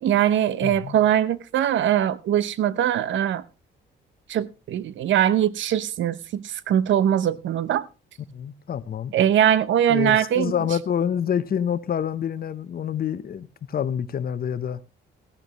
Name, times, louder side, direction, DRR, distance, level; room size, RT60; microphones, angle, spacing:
voice 1, 0.0-3.4 4.3-7.9 9.1-10.5, right 10 dB, 70° right, 0.8 m, -21 dB
voice 2, 0.6-1.0 8.3-9.1 9.9-14.8, left 8 dB, 50° left, 0.9 m, -27 dB
15.5 x 12.0 x 3.1 m
cardioid pair, 90°, 20 cm